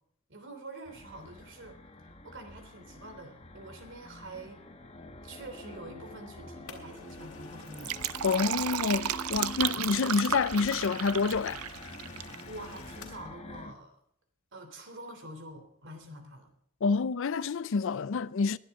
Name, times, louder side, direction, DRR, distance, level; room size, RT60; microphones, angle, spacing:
voice 1, 0.3-1.8 2.2-4.6 5.2-7.9 12.4-14.0 14.5-16.5, right 1 dB, 60° right, 3.2 m, -46 dB
sound 1, 0.8-13.7, left 1 dB, 30° left, 1.3 m, -47 dB
sound 2, 6.7-13.3, left 5 dB, 85° left, 3.5 m, -50 dB
Fill (with liquid), 7.6-12.4 12.7-12.8, right 11 dB, 85° right, 0.5 m, -34 dB
voice 2, 8.2-11.6 16.8-18.6, left 4 dB, 60° left, 0.5 m, -28 dB
22.0 x 11.0 x 3.7 m
head